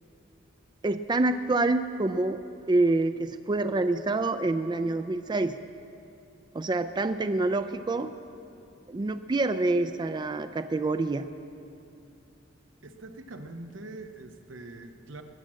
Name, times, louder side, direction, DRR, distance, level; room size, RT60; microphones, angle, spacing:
voice 1, 0.8-2.4 2.7-5.5 6.5-8.1 8.9-11.3, right 2 dB, 25° right, 10 dB, 0.4 m, -26 dB
voice 2, 12.8-15.2, right 2 dB, 85° right, 6 dB, 1.0 m, -43 dB
21.5 x 7.6 x 7.5 m, 2.7 s
head